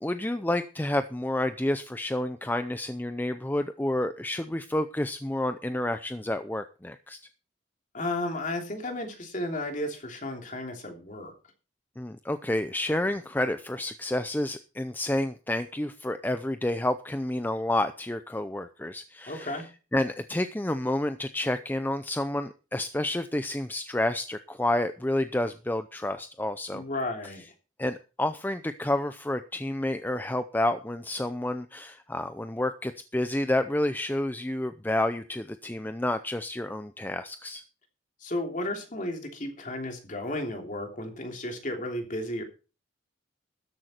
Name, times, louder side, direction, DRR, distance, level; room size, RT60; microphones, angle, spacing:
voice 1, 0.0-7.2 12.0-19.6 19.9-26.8 27.8-37.6, left 1 dB, 10° left, 10 dB, 0.5 m, -29 dB
voice 2, 7.9-11.3 19.3-19.6 26.7-27.4 38.2-42.4, left 1 dB, 40° left, 3 dB, 3.1 m, -33 dB
13.0 x 10.5 x 4.4 m, 0.34 s
head